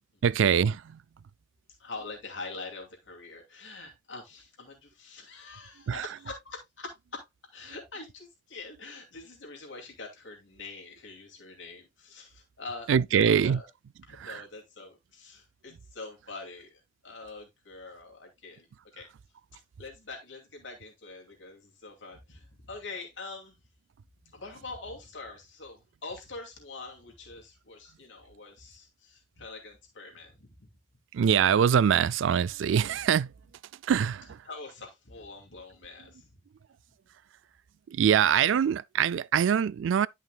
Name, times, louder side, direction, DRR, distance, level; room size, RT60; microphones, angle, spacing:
voice 1, 0.2-1.0 5.9-6.2 12.9-13.6 14.1-14.5 31.1-33.3 33.8-34.5 37.9-40.1, right 8 dB, 80° right, 0.3 m, -24 dB
voice 2, 1.8-7.2 7.5-13.7 14.1-16.7 17.0-18.7 18.9-19.1 19.5-23.6 24.3-30.7 34.5-36.3, left 3 dB, 75° left, 2.5 m, -44 dB
11.0 x 5.6 x 2.3 m
head